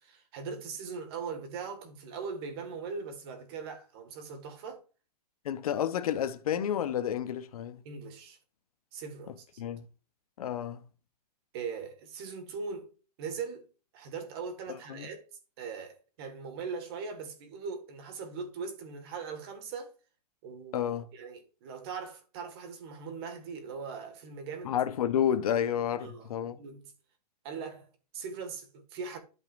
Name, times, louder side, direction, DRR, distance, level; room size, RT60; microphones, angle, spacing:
voice 1, 0.0-4.8 7.9-8.4 8.9-9.6 11.5-13.7 13.9-15.3 15.6-19.9 20.4-20.9 21.1-24.7 26.0-26.8 27.4-29.2, right 5 dB, 35° right, 1.8 m, -40 dB
voice 2, 5.4-7.8 9.6-9.9 10.4-10.8 14.7-15.1 20.7-21.1 24.6-26.6, left 9 dB, 60° left, 1.0 m, -30 dB
12.0 x 5.4 x 2.6 m
hypercardioid pair, 165°, 21 cm